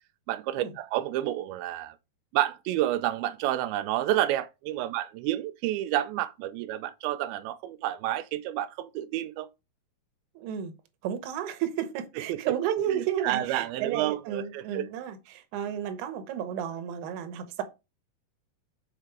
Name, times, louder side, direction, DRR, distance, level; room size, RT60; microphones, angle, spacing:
voice 1, 0.3-2.0 2.3-9.5 12.3-12.4 13.2-14.9, right 14 dB, 85° right, 2.4 m, -29 dB
voice 2, 10.4-10.7 11.0-17.6, right 9 dB, 65° right, 2.2 m, -32 dB
6.6 x 4.5 x 4.6 m
omnidirectional pair, 4.2 m